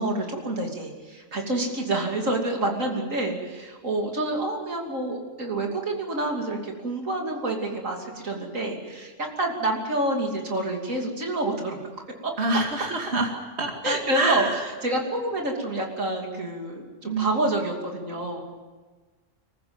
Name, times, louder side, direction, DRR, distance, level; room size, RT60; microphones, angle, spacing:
voice 1, 0.0-11.8 12.2-12.3 13.8-18.4, right 1 dB, 90° right, 1 dB, 3.3 m, -28 dB
voice 2, 12.4-13.3 13.6-14.5 17.0-17.4, right 3 dB, 55° right, 2 dB, 2.6 m, -26 dB
25.5 x 15.0 x 8.9 m, 1.3 s
omnidirectional pair, 1.3 m